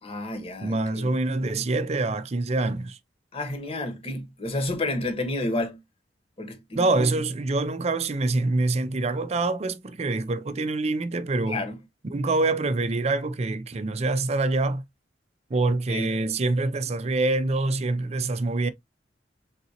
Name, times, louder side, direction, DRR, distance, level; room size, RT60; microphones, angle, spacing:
voice 1, 0.0-1.1 3.3-5.8 6.4-7.1 11.5-11.8 15.9-16.1, left 2 dB, 35° left, 1.2 m, -30 dB
voice 2, 0.6-3.0 6.7-11.6 12.1-14.8 15.5-18.7, right 2 dB, 40° right, 0.5 m, -25 dB
3.9 x 3.8 x 2.8 m
head